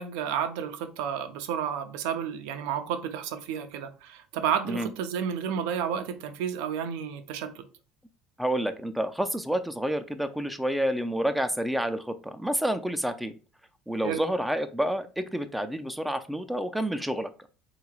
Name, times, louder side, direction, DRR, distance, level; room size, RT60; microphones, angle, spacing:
voice 1, 0.0-7.6 14.0-14.2, right 8 dB, 80° right, 0.5 m, -31 dB
voice 2, 8.4-13.3 13.9-17.5, equal, 5° right, 0.3 m, -29 dB
3.6 x 3.0 x 2.3 m
supercardioid pair, 120°, 0 cm